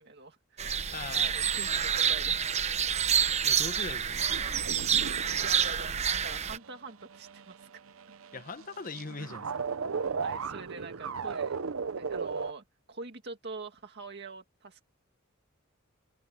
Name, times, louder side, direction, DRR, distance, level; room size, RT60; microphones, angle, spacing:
voice 1, 0.0-2.6 5.4-7.8 10.0-11.6 12.0-14.8, right 3 dB, 55° right, 2.1 m, -45 dB
sound 1, 0.6-6.6, right 8 dB, 35° right, 0.8 m, -28 dB
voice 2, 0.9-1.4 3.4-4.2 8.3-9.5, left 4 dB, 40° left, 1.3 m, -40 dB
sound 2, 4.1-12.5, right 5 dB, 85° right, 0.7 m, -37 dB
head